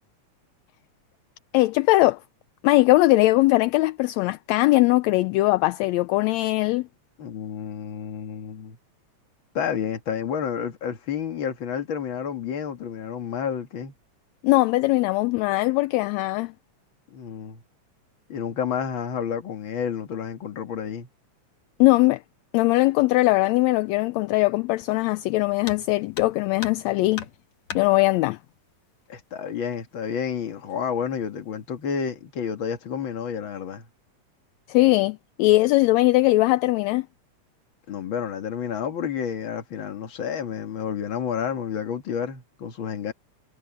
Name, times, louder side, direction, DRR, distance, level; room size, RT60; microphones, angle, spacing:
voice 1, 1.5-2.2 2.6-6.9 14.4-16.5 21.8-22.2 22.5-27.3 27.7-28.4 34.7-37.1, left 20 dB, 80° left, 1.6 m, -20 dB
voice 2, 7.2-8.8 9.5-13.9 17.1-17.6 18.3-21.1 29.1-33.9 37.9-43.1, left 7 dB, 45° left, 2.2 m, -30 dB
sound 1, 25.6-25.9 26.1-26.9 27.1-27.9 29.1-29.2 29.6-29.7 30.5-30.9 31.2-31.6, left 7 dB, 65° left, 3.2 m, -37 dB
omnidirectional pair, 3.5 m